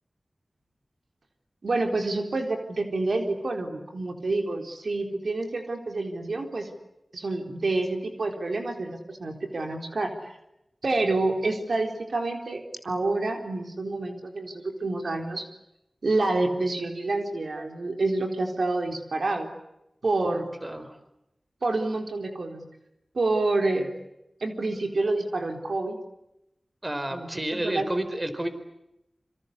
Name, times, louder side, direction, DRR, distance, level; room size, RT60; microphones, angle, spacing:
voice 1, 1.6-6.7 7.1-10.4 10.8-15.5 16.0-19.5 20.0-20.5 21.6-22.7 23.1-23.9 24.4-26.0 27.1-27.9, right 2 dB, 80° right, 4 dB, 4.0 m, -28 dB
voice 2, 20.6-21.0 26.8-28.5, right 1 dB, 30° right, 10 dB, 4.4 m, -30 dB
27.0 x 26.0 x 8.4 m, 0.87 s
wide cardioid pair, 50°, 0 cm